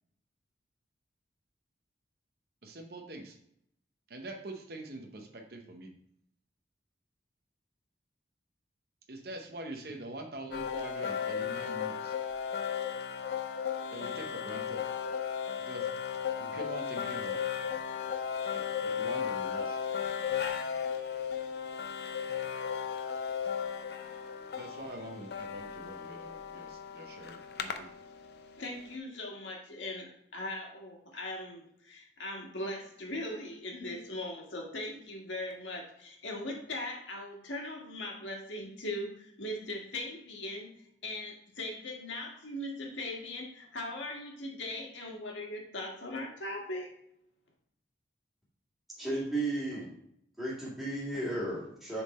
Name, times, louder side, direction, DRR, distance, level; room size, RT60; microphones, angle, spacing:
voice 1, 2.6-3.4 4.1-5.9 9.1-12.2 13.9-14.8 15.6-15.9 16.4-17.4 18.5-19.8 24.6-27.9, right 1 dB, 55° right, 3 dB, 0.7 m, -44 dB
sound 1, 10.5-28.5, left 7 dB, 60° left, 0.5 m, -35 dB
voice 2, 28.6-40.7 41.0-46.9, left 1 dB, 90° left, 0 dB, 1.5 m, -39 dB
voice 3, 49.0-49.9 50.4-52.0, right 2 dB, ahead, -8 dB, 1.9 m, -34 dB
6.8 x 3.7 x 4.1 m, 0.71 s
head